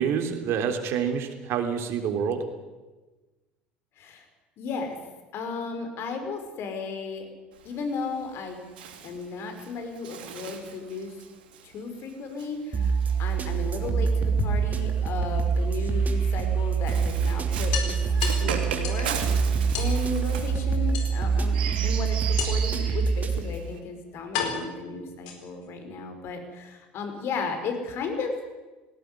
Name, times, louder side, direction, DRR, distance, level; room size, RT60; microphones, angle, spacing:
voice 1, 0.0-2.4, right 7 dB, 55° right, 6 dB, 3.6 m, -27 dB
voice 2, 4.6-5.0 5.3-7.3 7.6-8.6 9.0-11.2 11.6-19.2 19.7-28.3, left 4 dB, 55° left, 6 dB, 5.3 m, -34 dB
Bird, 7.5-14.1 15.0-23.8, right 7 dB, 80° right, 3.2 m, -38 dB
sound 1, 12.7-23.4, right 6 dB, 30° right, 3.1 m, -25 dB
sound 2, 13.7-14.7 16.2-16.3 16.7-16.8 17.1-17.2 17.7-19.1 19.7-20.0 20.9-21.5 22.4-22.8 23.6-23.7 24.3-25.7, left 7 dB, 70° left, 4.4 m, -33 dB
19.0 x 17.5 x 9.9 m, 1.2 s
hypercardioid pair, 70°, 5 cm